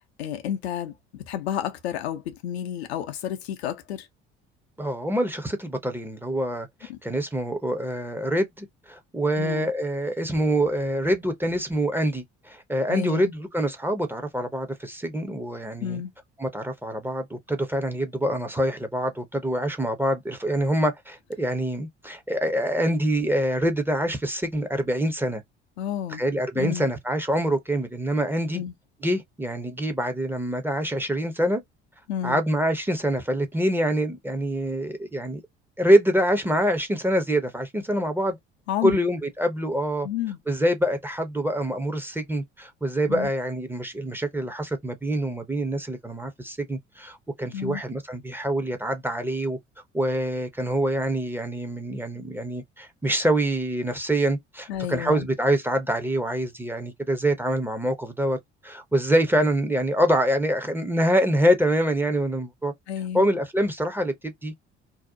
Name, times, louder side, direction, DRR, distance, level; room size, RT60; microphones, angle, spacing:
voice 1, 0.2-4.1 6.9-7.0 9.4-9.7 12.9-13.3 15.8-16.1 25.8-26.2 26.6-26.9 28.5-28.7 32.1-32.4 38.7-39.0 40.0-40.4 43.1-43.3 47.5-47.8 54.7-55.3 62.9-63.3, left 10 dB, 70° left, 0.5 m, -30 dB
voice 2, 4.8-16.0 16.4-25.4 26.1-28.6 29.0-31.6 32.2-35.4 35.8-38.4 38.8-40.1 40.5-49.6 49.9-58.4 58.6-62.7 63.1-64.5, right 1 dB, 5° right, 0.6 m, -25 dB
2.7 x 2.1 x 2.5 m
figure-of-eight pair, 55°, 34 cm